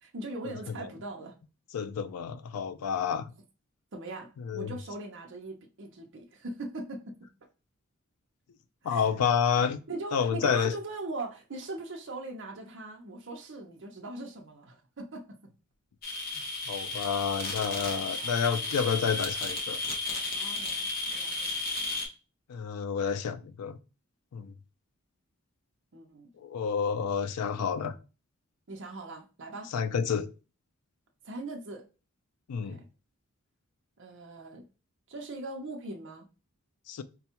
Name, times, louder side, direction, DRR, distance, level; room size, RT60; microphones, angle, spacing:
voice 1, 0.0-1.3 3.9-7.2 8.8-9.0 9.9-15.4 18.0-18.3 20.3-21.6 25.9-26.3 28.7-29.7 31.2-31.8 32.5-32.9 34.0-34.6 35.1-36.3, right 2 dB, 55° right, 0.6 m, -40 dB
voice 2, 1.7-3.3 4.4-4.7 8.8-9.8 10.1-10.7 16.7-19.8 22.5-23.8 24.3-24.5 26.4-27.9 29.7-30.3 32.5-32.8 36.9-37.0, left 7 dB, 85° left, 0.4 m, -29 dB
sound 1, 16.0-22.1, left 3 dB, 45° left, 0.9 m, -33 dB
4.2 x 2.3 x 2.8 m
head